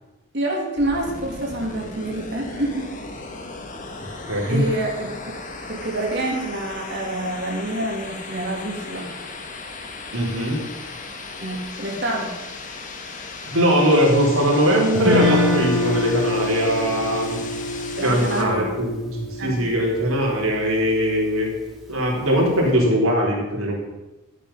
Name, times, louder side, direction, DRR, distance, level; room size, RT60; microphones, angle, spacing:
voice 1, 0.3-2.9 4.1-4.2 4.5-9.1 11.4-12.3 18.0-18.7 19.4-19.7, right 1 dB, 50° right, -1 dB, 2.6 m, -27 dB
sound 1, 0.8-18.4, left 3 dB, 35° left, 1.4 m, -36 dB
voice 2, 4.2-4.6 10.1-10.6 13.5-17.4 18.0-21.5 21.9-23.8, equal, 80° right, -2 dB, 3.9 m, -20 dB
Guitar, 14.9-21.1, left 2 dB, ahead, 2.1 m, -25 dB
13.0 x 8.7 x 5.7 m, 1.0 s
head